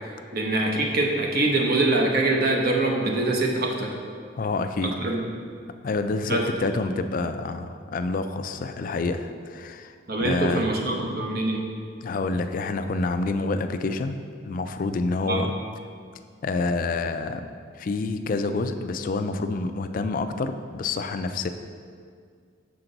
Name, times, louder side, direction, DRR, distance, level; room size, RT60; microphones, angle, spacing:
voice 1, 0.3-3.9 4.8-5.2 6.3-6.4 10.1-11.6 15.2-15.4, right 2 dB, 55° right, 1 dB, 0.9 m, -24 dB
voice 2, 4.4-5.0 5.8-9.9 10.2-10.7 12.0-14.2 14.4-15.5 16.4-17.4 17.8-21.5, left 3 dB, 45° left, 9 dB, 0.3 m, -27 dB
6.8 x 5.9 x 3.9 m, 2.1 s
head